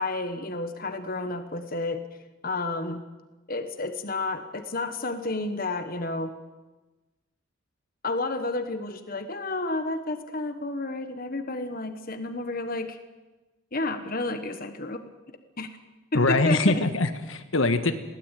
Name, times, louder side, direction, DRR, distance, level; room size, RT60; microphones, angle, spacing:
voice 1, 0.0-2.0 2.4-3.0 3.5-6.3 8.0-13.0 13.7-15.0 15.6-15.7 16.1-16.8, left 2 dB, 45° left, 8 dB, 1.4 m, -31 dB
voice 2, 16.1-18.0, left 2 dB, 70° left, 8 dB, 1.6 m, -23 dB
21.5 x 17.0 x 9.2 m, 1.1 s
head